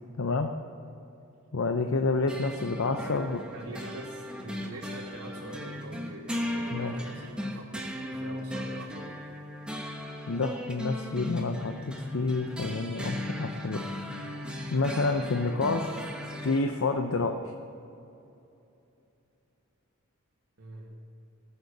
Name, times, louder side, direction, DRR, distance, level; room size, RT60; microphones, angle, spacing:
voice 1, 0.2-0.5 1.5-3.4 6.7-6.9 10.3-13.8 14.7-16.0 16.4-17.5, left 3 dB, 70° left, 5 dB, 0.6 m, -29 dB
sound 1, 2.3-16.6, left 1 dB, 5° right, 1.0 m, -37 dB
voice 2, 3.5-9.2 20.6-21.0, right 2 dB, 80° right, -4 dB, 1.6 m, -44 dB
17.5 x 6.8 x 6.6 m, 2.8 s
head